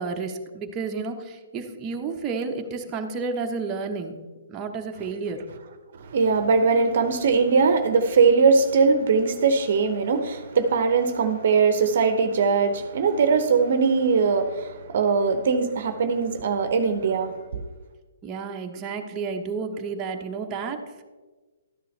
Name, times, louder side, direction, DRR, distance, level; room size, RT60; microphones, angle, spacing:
voice 1, 0.0-4.1 4.5-5.4 18.2-21.0, right 4 dB, 25° right, 2 dB, 1.1 m, -31 dB
voice 2, 6.0-17.6, right 5 dB, 55° right, 8 dB, 0.9 m, -21 dB
13.0 x 10.0 x 3.3 m, 1.3 s
figure-of-eight pair, 130°, 0 cm